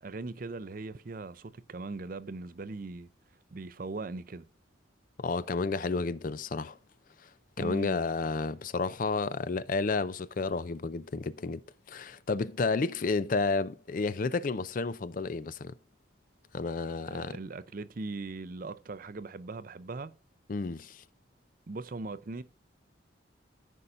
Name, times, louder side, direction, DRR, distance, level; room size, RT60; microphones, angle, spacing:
voice 1, 0.0-3.1 3.5-4.5 7.6-8.0 17.1-20.1 21.7-22.4, right 3 dB, 45° right, 0.5 m, -39 dB
voice 2, 5.2-6.8 7.6-11.6 11.9-15.8 16.5-17.4 20.5-21.0, left 4 dB, 45° left, 0.4 m, -31 dB
14.0 x 5.4 x 2.5 m
head